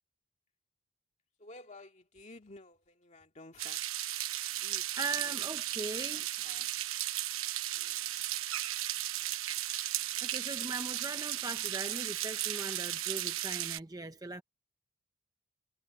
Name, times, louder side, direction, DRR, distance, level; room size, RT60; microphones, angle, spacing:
voice 1, 1.4-3.8 4.5-4.9 5.2-5.4 6.1-6.7 7.7-8.2, left 2 dB, 35° left, 2.2 m, -53 dB
sound 1, 3.6-13.8, right 13 dB, 70° right, 1.0 m, -35 dB
voice 2, 5.0-6.3 10.2-14.4, right 2 dB, 15° right, 0.7 m, -39 dB
head